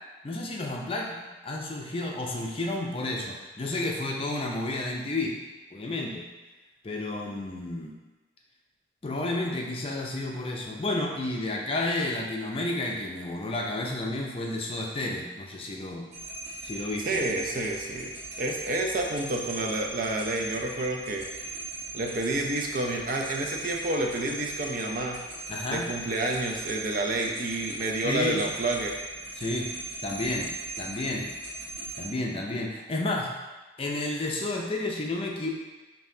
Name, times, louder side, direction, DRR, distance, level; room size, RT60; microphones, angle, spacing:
voice 1, 0.2-5.4 5.7-6.2 6.8-7.9 9.0-16.1 16.6-17.2 25.5-25.9 28.0-28.5 29.3-29.7 30.0-31.3 32.0-33.3 33.8-35.5, left 2 dB, 30° left, -1 dB, 0.5 m, -31 dB
sound 1, 16.1-32.1, right 2 dB, 35° right, 1.1 m, -39 dB
voice 2, 17.0-18.1 18.4-21.3 21.9-25.2 25.7-29.0, right 2 dB, 50° right, 1 dB, 0.5 m, -29 dB
5.5 x 2.7 x 2.7 m, 1.2 s
head